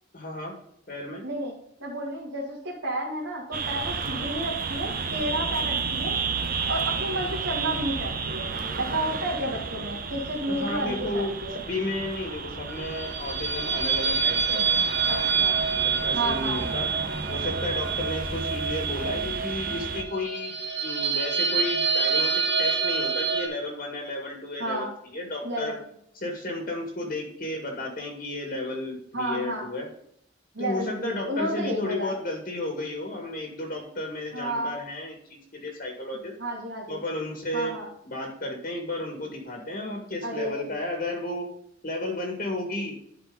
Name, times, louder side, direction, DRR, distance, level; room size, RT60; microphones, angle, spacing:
voice 1, 0.1-0.5 0.9-1.2 4.0-4.3 10.5-11.4 11.7-14.9 15.8-16.9 17.3-20.6 20.8-25.8 26.1-29.9 30.6-36.3 36.9-37.8 38.0-41.5 41.8-42.9, left 1 dB, 50° left, 1 dB, 1.9 m, -33 dB
voice 2, 1.2-1.5 1.8-6.2 6.7-11.6 15.1-15.5 16.1-16.6 24.6-24.9 25.4-25.7 29.1-29.6 30.5-32.1 34.3-34.8 36.4-37.0 37.5-37.9 40.2-40.7, right 1 dB, 85° right, -6 dB, 2.4 m, -31 dB
sound 1, 3.5-20.0, right 4 dB, 50° right, 0.9 m, -32 dB
sound 2, 12.7-23.5, right 5 dB, 70° right, 2.2 m, -27 dB
11.0 x 4.9 x 3.9 m, 0.71 s
head